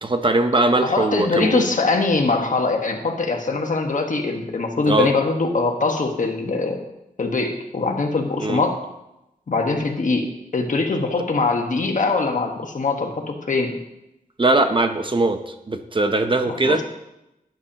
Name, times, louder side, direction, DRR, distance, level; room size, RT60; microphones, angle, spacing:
voice 1, 0.0-1.6 4.9-5.1 8.4-8.6 14.4-16.8, right 2 dB, 35° right, 7 dB, 0.8 m, -20 dB
voice 2, 0.8-6.8 7.2-8.8 9.5-10.3 10.5-13.7 16.5-16.8, left 3 dB, 60° left, 3 dB, 1.4 m, -22 dB
12.5 x 10.5 x 2.9 m, 0.89 s
wide cardioid pair, 105°, 15 cm